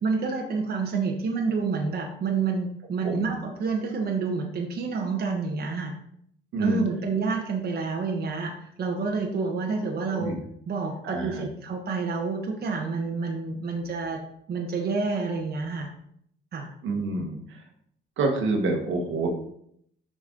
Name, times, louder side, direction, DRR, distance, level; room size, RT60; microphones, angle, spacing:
voice 1, 0.0-5.9 6.6-10.3 10.7-14.2 14.5-15.9 16.5-16.7, right 4 dB, 50° right, 1 dB, 1.1 m, -28 dB
voice 2, 11.0-11.5 16.8-17.6 18.2-19.3, right 3 dB, 75° right, 3 dB, 1.3 m, -27 dB
6.2 x 5.3 x 3.8 m, 0.69 s
cardioid pair, 90°, 20 cm